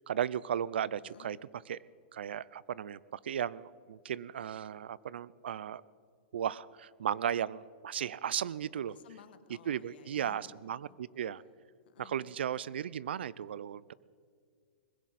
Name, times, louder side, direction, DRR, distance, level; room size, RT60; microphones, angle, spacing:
voice 1, 0.0-1.4 1.7-1.8 2.1-5.8 6.3-8.9 9.7-11.4 12.0-13.9, right 9 dB, 90° right, 21 dB, 0.4 m, -35 dB
voice 2, 1.0-1.4 8.9-11.0 11.8-12.4, left 9 dB, 70° left, 10 dB, 1.3 m, -57 dB
20.5 x 16.5 x 4.2 m, 2.1 s
hypercardioid pair, 150°, 6 cm